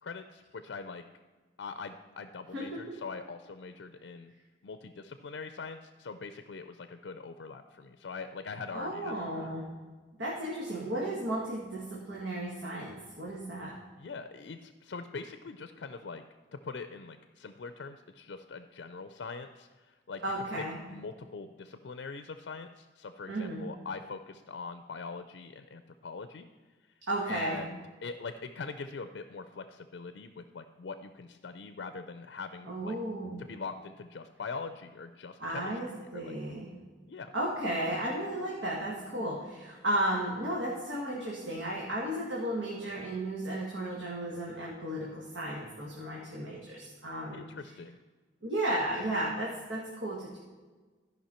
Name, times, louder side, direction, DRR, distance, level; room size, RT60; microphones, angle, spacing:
voice 1, 0.0-1.0 1.6-4.3 4.6-9.5 14.0-16.2 16.5-20.2 20.9-26.5 27.3-33.0 33.4-36.3 37.1-37.3 47.3-48.0, left 4 dB, 70° left, 9 dB, 0.4 m, -42 dB
voice 2, 2.5-2.8 8.7-9.7 10.2-13.7 20.2-20.8 23.3-23.6 27.1-27.6 32.6-33.4 35.4-36.7 37.3-47.4 48.4-50.4, right 1 dB, 85° right, -4 dB, 1.6 m, -34 dB
14.0 x 5.4 x 4.3 m, 1.3 s
head